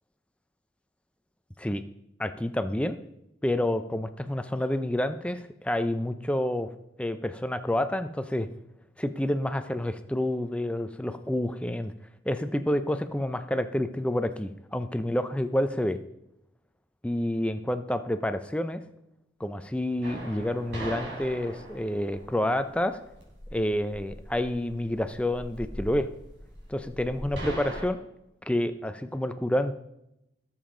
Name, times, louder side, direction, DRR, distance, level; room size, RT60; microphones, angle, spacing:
voice 1, 2.2-3.0 3.4-6.7 7.0-8.5 9.0-11.9 12.3-16.0 17.0-18.8 19.4-23.0 23.5-26.1 26.7-28.0 28.5-29.8, left 1 dB, 5° left, 9 dB, 0.5 m, -28 dB
sound 1, 20.0-27.9, right 1 dB, 80° right, 3.7 m, -40 dB
17.5 x 7.3 x 3.8 m, 0.84 s
head